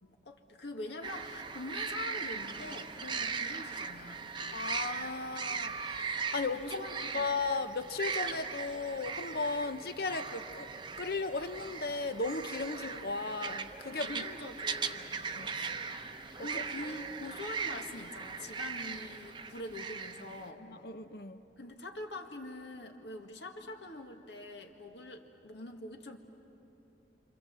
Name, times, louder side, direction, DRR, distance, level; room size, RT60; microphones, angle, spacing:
voice 1, 0.0-4.3 6.6-7.3 13.9-15.1 16.4-20.6 21.6-26.2, left 2 dB, 75° left, 3 dB, 1.9 m, -44 dB
sound 1, 1.0-20.5, right 5 dB, 25° right, 0.8 m, -39 dB
voice 2, 4.5-6.0 6.3-6.8 7.1-10.7 11.0-14.2 15.4-15.7 20.6-21.4, left 3 dB, 55° left, 10 dB, 0.9 m, -36 dB
27.5 x 26.5 x 7.5 m, 2.9 s
head